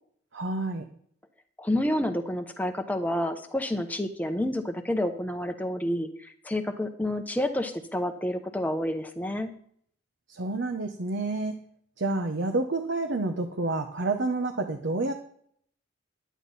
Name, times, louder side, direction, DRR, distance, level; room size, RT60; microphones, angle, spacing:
voice 1, 0.3-0.8 10.3-11.6 12.0-15.1, right 2 dB, 65° right, 5 dB, 0.9 m, -29 dB
voice 2, 1.6-9.5, left 1 dB, 10° left, 6 dB, 0.8 m, -29 dB
11.0 x 9.2 x 4.1 m, 0.63 s
head